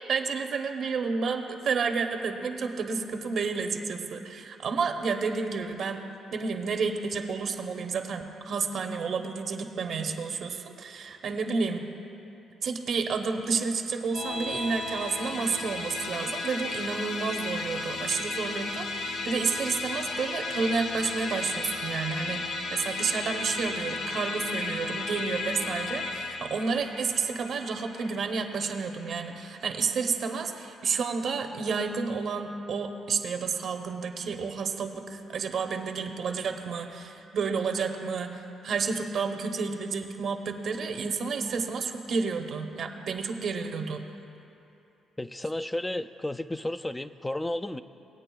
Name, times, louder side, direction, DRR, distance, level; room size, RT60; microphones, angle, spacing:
voice 1, 0.0-6.0 6.3-11.9 12.6-44.1, right 5 dB, 60° right, 5 dB, 0.7 m, -30 dB
Musical instrument, 14.1-29.7, left 3 dB, 75° left, 0.8 m, -34 dB
voice 2, 45.2-47.8, left 1 dB, 10° left, 11 dB, 0.3 m, -32 dB
19.5 x 8.7 x 2.3 m, 2.9 s
cardioid pair, 90°, 0 cm